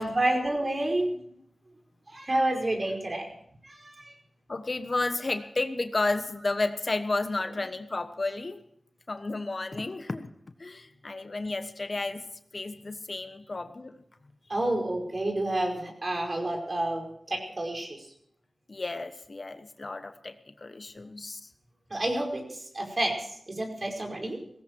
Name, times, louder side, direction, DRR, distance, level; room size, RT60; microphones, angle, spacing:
voice 1, 0.0-1.3 2.1-3.3 3.6-4.1 14.5-18.1 21.9-24.4, right 1 dB, 45° right, 2 dB, 5.2 m, -29 dB
voice 2, 4.5-8.6 9.1-10.3 10.6-12.2 12.5-14.0 18.7-21.5, left 2 dB, 50° left, 9 dB, 1.2 m, -32 dB
18.5 x 16.5 x 4.7 m, 0.68 s
cardioid pair, 40°, 0 cm